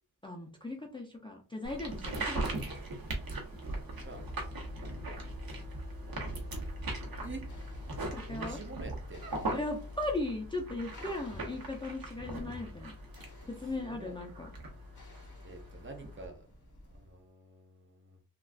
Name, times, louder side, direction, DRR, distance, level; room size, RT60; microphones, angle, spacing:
voice 1, 0.2-2.5 8.0-8.6 9.5-12.9 13.5-14.5, left 2 dB, 15° left, 1 dB, 0.5 m, -37 dB
sound 1, 1.6-16.3, right 1 dB, 65° right, 1.0 m, -40 dB
sound 2, 3.5-8.6, right 4 dB, 50° right, 1.3 m, -49 dB
voice 2, 3.9-4.2 7.2-7.4 8.2-9.7 13.8-14.1 15.4-16.5 16.9-18.2, right 3 dB, 30° right, 3 dB, 0.7 m, -47 dB
sound 3, 6.0-17.3, left 1 dB, 50° left, 1.3 m, -57 dB
3.3 x 2.4 x 2.4 m, 0.39 s
wide cardioid pair, 80°, 39 cm